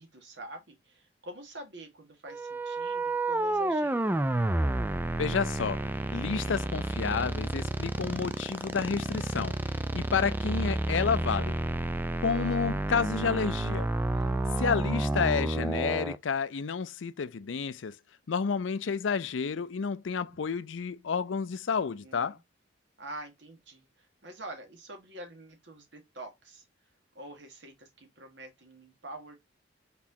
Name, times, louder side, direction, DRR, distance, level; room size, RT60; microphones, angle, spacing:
voice 1, 0.0-4.2 21.8-22.4 23.0-26.6 27.1-29.4, right 1 dB, 65° right, 1.7 m, -46 dB
sound 1, 2.3-16.2, right 1 dB, 10° right, 0.4 m, -30 dB
voice 2, 5.2-9.6 9.9-11.5 12.2-13.9 14.6-17.9 18.3-22.4, left 5 dB, 85° left, 0.5 m, -30 dB
4.2 x 4.1 x 2.7 m
head